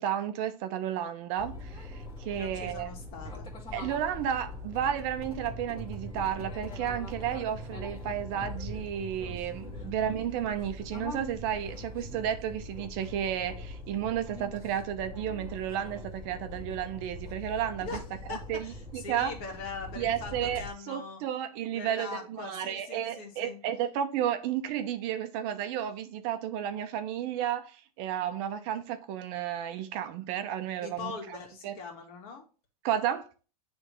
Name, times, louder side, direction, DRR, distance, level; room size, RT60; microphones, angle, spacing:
voice 1, 0.0-2.9 3.7-17.9 18.3-19.3 20.0-31.4 31.6-31.7 32.8-33.3, right 10 dB, 45° right, 0.8 m, -32 dB
sound 1, 1.4-20.7, left 1 dB, 25° left, 1.8 m, -42 dB
voice 2, 2.3-3.5 9.7-9.9 17.8-21.2 21.7-23.6 30.8-32.4, left 4 dB, 50° left, 2.1 m, -42 dB
8.6 x 3.5 x 3.1 m
hypercardioid pair, 120°, 20 cm